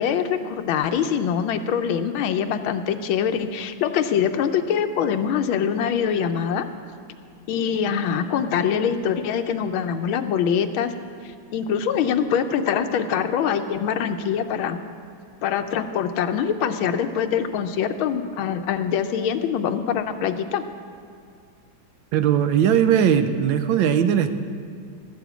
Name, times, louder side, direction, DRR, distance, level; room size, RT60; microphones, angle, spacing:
voice 1, 0.0-6.6 7.5-10.9 11.5-14.8 15.4-20.6, left 8 dB, 90° left, 8 dB, 1.5 m, -24 dB
voice 2, 22.1-24.3, right 8 dB, 75° right, 9 dB, 1.3 m, -19 dB
13.5 x 7.1 x 8.2 m, 2.3 s
omnidirectional pair, 2.2 m